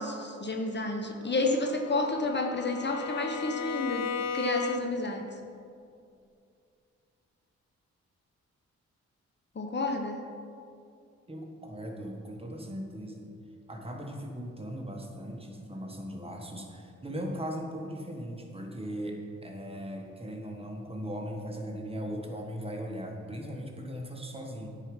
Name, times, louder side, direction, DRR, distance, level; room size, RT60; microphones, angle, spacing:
voice 1, 0.0-4.0 4.3-5.3 9.5-10.2, left 2 dB, 35° left, 3 dB, 0.9 m, -30 dB
Bowed string instrument, 1.3-5.2, left 6 dB, 60° left, 0.5 m, -36 dB
voice 2, 11.3-13.4 13.7-24.7, equal, 20° right, 1 dB, 1.4 m, -38 dB
9.9 x 4.7 x 5.3 m, 2.4 s
cardioid pair, 60°, 29 cm